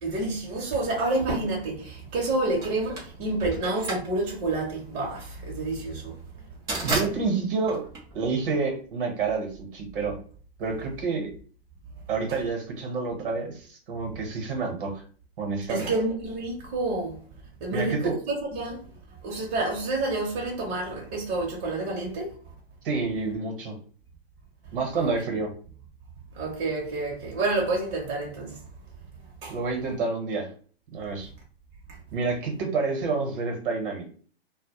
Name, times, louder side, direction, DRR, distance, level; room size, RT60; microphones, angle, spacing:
voice 1, 0.0-6.2 15.7-17.2 17.6-18.8 19.2-22.3 24.9-25.1 26.3-28.6 29.4-29.5, right 2 dB, 30° right, 0.7 m, -29 dB
sound 1, 2.6-8.8, right 2 dB, 10° right, 0.3 m, -34 dB
voice 2, 6.8-7.8 8.1-10.2 10.6-11.3 12.1-15.0 15.4-15.9 17.7-18.2 22.8-23.7 24.7-25.5 29.5-30.5 30.9-31.3 32.1-34.1, right 4 dB, 55° right, 0.9 m, -28 dB
2.1 x 2.1 x 2.9 m
hypercardioid pair, 125°, 31 cm